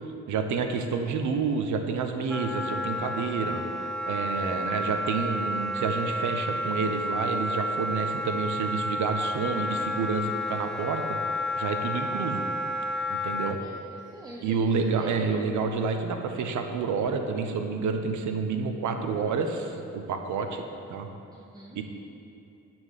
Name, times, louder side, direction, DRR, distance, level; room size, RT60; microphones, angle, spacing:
voice 1, 0.3-3.6 4.1-11.2 11.6-12.4 13.1-13.6 14.4-21.1 21.7-21.8, right 5 dB, 75° right, 6 dB, 0.9 m, -29 dB
Wind instrument woodwind instrument, 2.3-13.6, left 1 dB, ahead, 0.5 m, -31 dB
voice 2, 13.4-15.2 21.3-21.8, right 1 dB, 15° right, -3 dB, 1.0 m, -45 dB
9.6 x 4.6 x 7.4 m, 2.8 s
cardioid pair, 90°, 30 cm